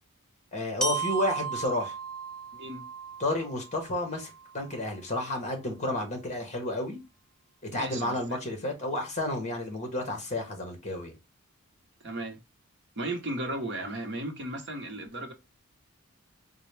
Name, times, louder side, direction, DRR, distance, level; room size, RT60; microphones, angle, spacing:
voice 1, 0.5-1.9 3.2-7.0 7.7-11.1, left 1 dB, 30° left, 1.1 m, -31 dB
Glockenspiel, 0.8-4.8, right 4 dB, 5° left, 0.5 m, -35 dB
voice 2, 2.5-2.8 7.7-8.4 12.0-12.4 13.0-15.3, right 1 dB, 55° right, 0.8 m, -35 dB
4.0 x 2.2 x 3.2 m
head